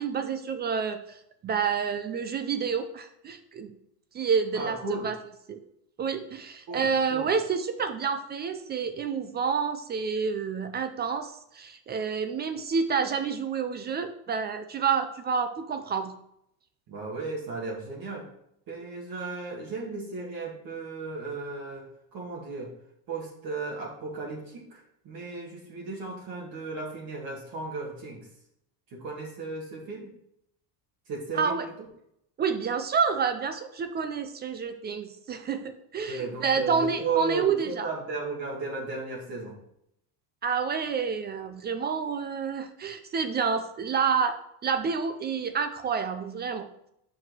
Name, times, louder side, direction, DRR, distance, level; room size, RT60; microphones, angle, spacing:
voice 1, 0.0-3.7 4.1-4.8 5.0-5.2 5.5-5.6 6.0-16.1 31.3-31.6 32.4-37.9 40.4-44.4 44.6-46.7, right 6 dB, 25° right, 9 dB, 0.3 m, -29 dB
voice 2, 4.5-5.1 6.7-7.3 16.9-18.3 18.7-21.9 22.1-22.7 23.1-28.3 28.9-30.1 31.1-31.7 36.1-39.5, right 4 dB, 50° right, -2 dB, 2.2 m, -35 dB
6.1 x 4.9 x 6.2 m, 0.76 s
cardioid pair, 135°, 48 cm